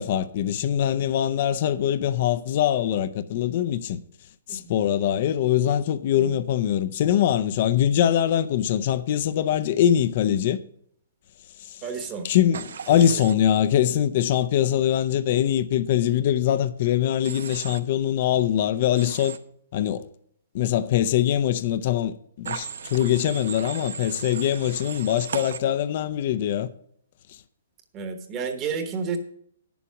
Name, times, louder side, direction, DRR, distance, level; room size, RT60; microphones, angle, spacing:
voice 1, 0.0-4.0 4.5-10.6 11.6-11.8 12.2-19.4 19.7-20.1 20.5-26.7, left 10 dB, 40° left, 0.6 m, -23 dB
voice 2, 11.8-12.3 12.9-13.2 27.9-29.2, right 5 dB, 20° right, 1.2 m, -31 dB
Human voice / Train, 12.5-13.3 17.2-17.8 19.0-19.4 22.5-25.6, right 7 dB, 70° right, 0.8 m, -36 dB
9.8 x 7.1 x 5.9 m
hypercardioid pair, 165°, 0 cm